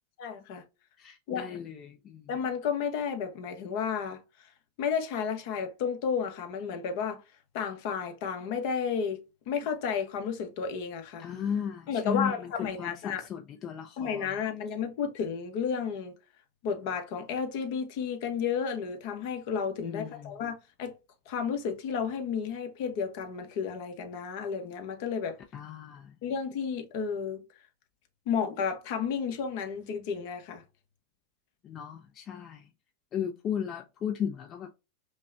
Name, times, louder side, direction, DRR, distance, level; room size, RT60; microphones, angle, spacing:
voice 1, 0.2-0.6 1.3-1.5 2.3-4.5 4.8-7.2 7.5-9.2 9.5-11.3 11.9-13.2 14.0-16.1 16.6-20.9 21.3-25.4 26.2-27.4 28.3-30.6, left 6 dB, 60° left, 0.9 m, -32 dB
voice 2, 1.0-2.3 11.2-14.3 19.8-20.3 25.5-26.2 31.6-32.7 33.1-34.7, left 8 dB, 35° left, 0.5 m, -35 dB
5.3 x 2.2 x 2.6 m
supercardioid pair, 125°, 0 cm